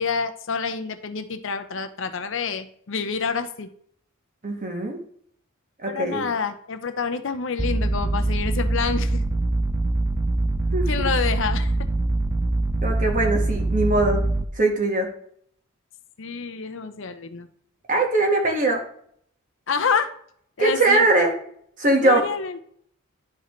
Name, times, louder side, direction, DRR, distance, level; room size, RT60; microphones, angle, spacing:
voice 1, 0.0-3.7 5.9-9.2 10.9-11.7 16.2-17.5 19.7-20.1 20.6-21.1 22.0-22.6, left 5 dB, 60° left, 9 dB, 0.6 m, -27 dB
voice 2, 4.4-5.0 5.8-6.3 10.7-11.1 12.8-14.2 14.5-15.1 17.9-18.8 20.6-21.3 21.8-22.2, right 2 dB, 40° right, 2 dB, 1.5 m, -21 dB
sound 1, 7.6-14.5, right 2 dB, 15° right, 0.4 m, -23 dB
11.5 x 4.1 x 3.2 m, 0.63 s
head